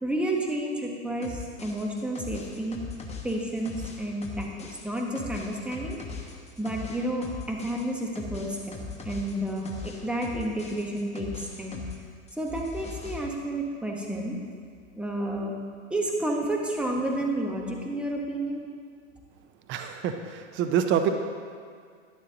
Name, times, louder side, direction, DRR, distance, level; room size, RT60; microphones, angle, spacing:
voice 1, 0.0-2.8 3.2-4.5 4.8-6.0 6.6-8.8 9.0-11.8 12.4-14.4 14.9-15.5 15.9-18.6, right 1 dB, 5° right, -1 dB, 1.4 m, -30 dB
sound 1, 1.2-12.0 12.3-13.2, left 4 dB, 15° left, 1.2 m, -40 dB
voice 2, 19.7-21.1, right 9 dB, 30° right, 7 dB, 0.7 m, -26 dB
11.5 x 11.0 x 3.0 m, 2.1 s
hypercardioid pair, 105°, 39 cm